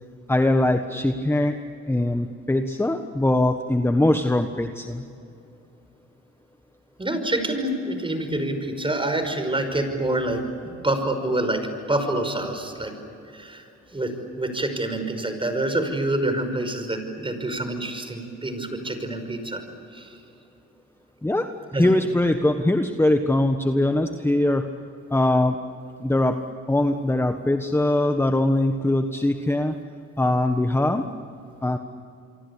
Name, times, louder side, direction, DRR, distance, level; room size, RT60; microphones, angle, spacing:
voice 1, 0.3-1.5 1.9-5.0 21.2-24.7 25.1-25.6 26.0-26.4 26.7-29.7 30.2-31.0 31.6-31.8, left 1 dB, 10° left, 6 dB, 1.4 m, -22 dB
voice 2, 7.0-10.4 10.8-12.9 13.3-13.7 13.9-14.1 14.4-19.6 19.9-20.2 21.7-21.9, right 1 dB, 15° right, 7 dB, 5.5 m, -26 dB
27.5 x 24.0 x 8.5 m, 2.7 s
cardioid pair, 90°, 30 cm